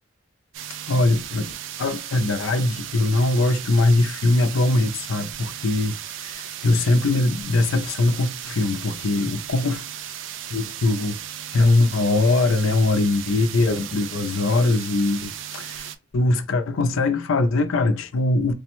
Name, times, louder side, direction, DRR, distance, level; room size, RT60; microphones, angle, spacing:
sound 1, 0.5-16.0, right 10 dB, 65° right, 0.3 m, -36 dB
voice 1, 0.9-1.5 1.8-9.8 10.5-11.2 11.5-18.5, left 2 dB, 75° left, 0.5 m, -21 dB
3.3 x 2.1 x 2.9 m
head